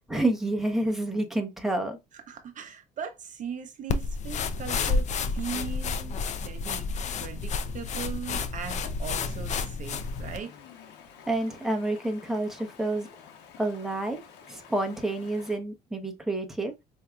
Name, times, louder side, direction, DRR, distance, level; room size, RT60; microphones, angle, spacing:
voice 1, 0.1-2.0 11.3-13.1 13.6-14.2 14.5-16.7, right 2 dB, ahead, 0.9 m, -29 dB
voice 2, 2.1-10.5, right 7 dB, 50° right, 0.7 m, -39 dB
sound 1, 3.9-10.4, left 4 dB, 45° left, 0.5 m, -30 dB
Stream, 9.8-15.6, left 7 dB, 85° left, 0.9 m, -50 dB
4.6 x 2.7 x 2.4 m
cardioid pair, 110°, 17 cm